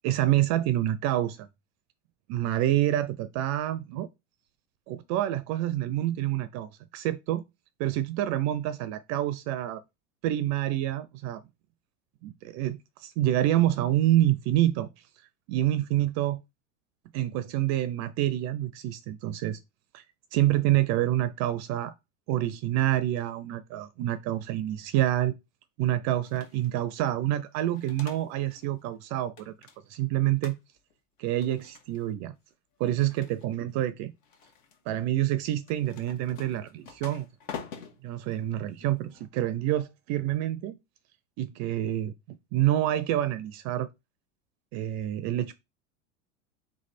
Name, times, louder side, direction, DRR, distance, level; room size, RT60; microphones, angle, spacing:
voice 1, 0.0-1.5 2.3-4.1 4.9-7.4 7.8-9.8 10.2-11.4 12.2-14.9 15.5-16.4 17.1-19.6 19.9-20.0 20.3-21.9 22.3-25.3 25.8-29.5 29.9-30.5 31.2-32.3 32.8-34.1 34.9-37.3 38.0-40.8 41.4-43.9 44.7-45.5, right 13 dB, 45° right, 0.4 m, -27 dB
sound 1, 26.2-26.8 27.5-28.7 28.9-30.0 30.4-30.9 31.3-32.1 32.8-33.7 34.2-34.8 35.6-39.3, left 7 dB, 65° left, 1.5 m, -46 dB
3.5 x 3.2 x 4.1 m
hypercardioid pair, 105°, 40 cm